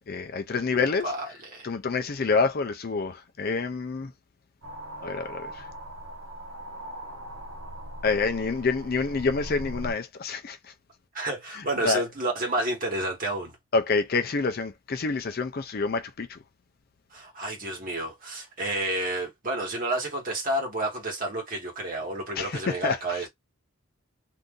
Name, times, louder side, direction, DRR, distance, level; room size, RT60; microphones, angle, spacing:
voice 1, 0.1-1.1 1.6-4.1 5.0-5.5 8.0-10.6 11.8-12.0 13.7-16.3 22.4-23.0, left 4 dB, 45° left, 0.4 m, -27 dB
voice 2, 0.7-1.7 11.1-13.5 17.1-23.3, right 1 dB, 40° right, 1.3 m, -30 dB
ambienta-soundtrack metaphisical-death, 4.6-9.9, right 1 dB, 70° right, 0.9 m, -40 dB
2.7 x 2.5 x 3.6 m
head